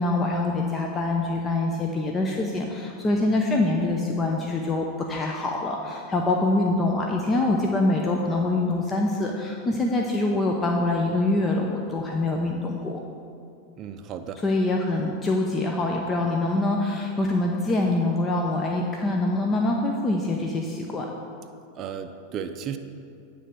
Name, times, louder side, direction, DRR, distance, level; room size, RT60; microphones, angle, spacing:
voice 1, 0.0-13.0 14.4-21.1, left 2 dB, 25° left, 0 dB, 0.7 m, -25 dB
voice 2, 13.8-14.4 21.8-22.8, right 8 dB, 40° right, 6 dB, 0.5 m, -34 dB
9.5 x 3.4 x 6.7 m, 2.5 s
hypercardioid pair, 100°, 0 cm